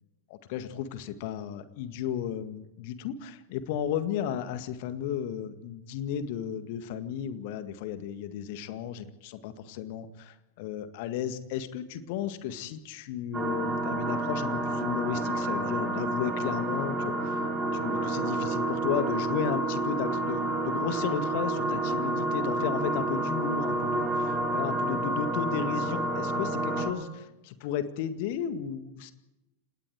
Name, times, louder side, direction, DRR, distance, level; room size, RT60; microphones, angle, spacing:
voice 1, 0.3-24.1 24.5-29.1, left 9 dB, 50° left, 10 dB, 1.9 m, -34 dB
sound 1, 13.3-26.9, right 2 dB, 15° right, 3.9 m, -29 dB
29.5 x 18.5 x 4.9 m, 0.95 s
figure-of-eight pair, 90°, 0 cm